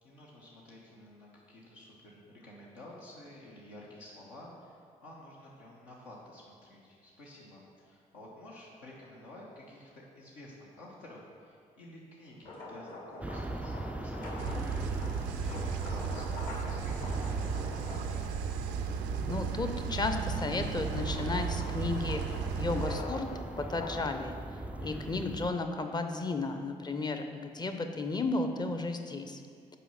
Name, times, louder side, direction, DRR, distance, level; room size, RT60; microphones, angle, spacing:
voice 1, 0.0-18.4, left 1 dB, 75° left, -5 dB, 1.1 m, -51 dB
sound 1, 12.3-18.9 19.4-26.6, left 2 dB, 55° left, 1.7 m, -45 dB
sound 2, 13.2-25.5, right 2 dB, 5° right, 0.3 m, -40 dB
sound 3, 14.4-23.0, right 7 dB, 70° right, 0.5 m, -35 dB
voice 2, 19.3-23.3 23.7-24.3 24.8-29.4, left 3 dB, 25° left, 6 dB, 0.7 m, -33 dB
5.6 x 4.6 x 5.6 m, 2.2 s
hypercardioid pair, 45°, 18 cm